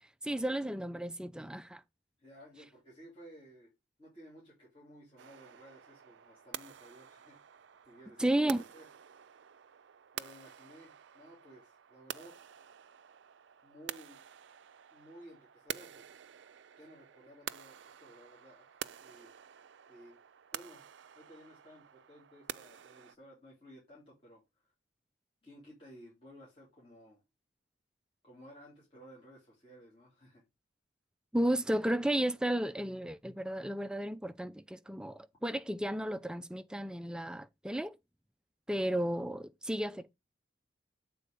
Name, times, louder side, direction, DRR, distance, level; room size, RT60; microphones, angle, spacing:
voice 1, 0.2-1.8 8.2-8.6 31.3-38.0 38.7-40.1, right 1 dB, 5° right, 0.4 m, -33 dB
voice 2, 2.2-3.7 4.0-7.4 7.9-8.9 10.1-12.4 13.6-14.2 14.9-16.2 16.8-18.7 19.0-19.3 19.9-20.2 20.5-20.9 21.1-24.7 25.4-27.2 28.2-30.4, equal, 30° left, 3.0 m, -56 dB
sound 1, 5.2-23.2, right 9 dB, 70° right, 0.4 m, -48 dB
7.9 x 4.1 x 5.2 m
head